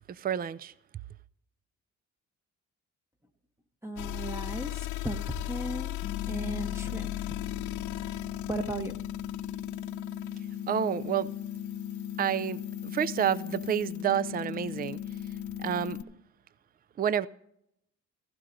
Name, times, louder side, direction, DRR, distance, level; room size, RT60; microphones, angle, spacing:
voice 1, 0.1-0.7 10.7-11.3 12.2-15.0 15.6-16.0 17.0-17.3, right 9 dB, 30° right, 0.4 m, -29 dB
voice 2, 3.8-6.0 6.3-7.1 8.5-8.9, right 1 dB, 10° right, 0.9 m, -36 dB
sound 1, 4.0-16.0, left 16 dB, 75° left, 0.5 m, -39 dB
sound 2, 6.0-16.0, left 10 dB, 45° left, 1.0 m, -38 dB
16.5 x 15.0 x 2.6 m
cardioid pair, 90°, 30 cm